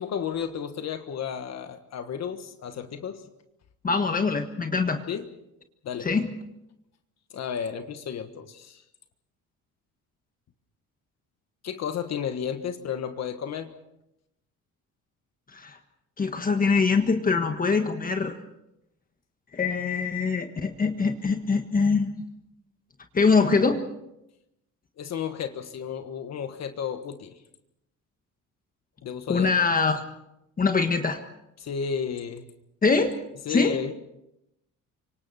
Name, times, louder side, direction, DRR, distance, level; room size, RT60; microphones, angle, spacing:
voice 1, 0.0-3.2 5.1-5.3 5.8-6.1 7.3-8.8 11.6-13.7 25.0-27.4 29.0-29.5 31.6-32.4 33.4-33.9, left 7 dB, 55° left, 8 dB, 1.5 m, -32 dB
voice 2, 3.8-5.0 6.0-6.3 15.5-15.8 16.2-18.4 19.5-22.1 23.1-23.8 29.3-30.0 30.6-31.2 32.8-33.1 33.5-33.8, left 4 dB, 25° left, 5 dB, 1.5 m, -23 dB
29.0 x 25.0 x 4.3 m, 0.85 s
cardioid pair, 135°, 32 cm